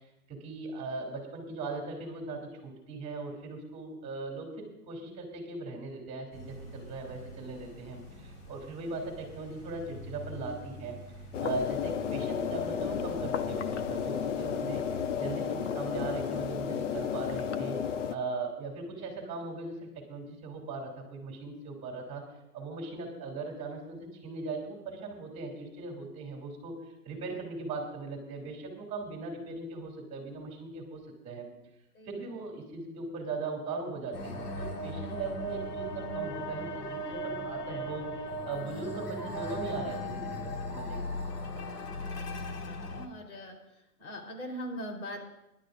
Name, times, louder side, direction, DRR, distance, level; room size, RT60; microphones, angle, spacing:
voice 1, 0.3-11.0 11.4-14.9 15.1-17.8 18.1-22.2 22.5-31.5 32.0-41.2, right 3 dB, 15° right, 1 dB, 2.7 m, -39 dB
sound 1, 6.3-15.2, right 1 dB, 30° left, 5.0 m, -47 dB
sound 2, 11.3-18.2, left 8 dB, 50° left, 0.8 m, -32 dB
sound 3, 34.1-43.1, equal, 90° left, 1.9 m, -37 dB
voice 2, 42.1-43.6 44.0-45.2, equal, 70° left, 2 dB, 3.8 m, -41 dB
24.5 x 11.5 x 2.5 m, 0.89 s
hypercardioid pair, 160°, 45 cm